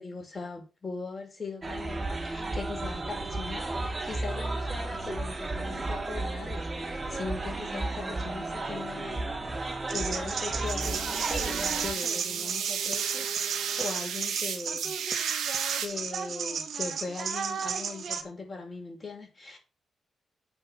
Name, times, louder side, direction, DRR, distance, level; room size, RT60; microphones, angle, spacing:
voice 1, 0.0-15.2 15.8-19.6, left 4 dB, 35° left, 5.7 m, -40 dB
sound 1, 1.6-11.9, right 2 dB, 30° right, 3.4 m, -33 dB
sound 2, 9.9-18.2, right 6 dB, 65° right, 2.0 m, -34 dB
sound 3, 10.7-15.9, right 8 dB, 80° right, 1.8 m, -33 dB
8.9 x 5.4 x 7.5 m
supercardioid pair, 50°, 0 cm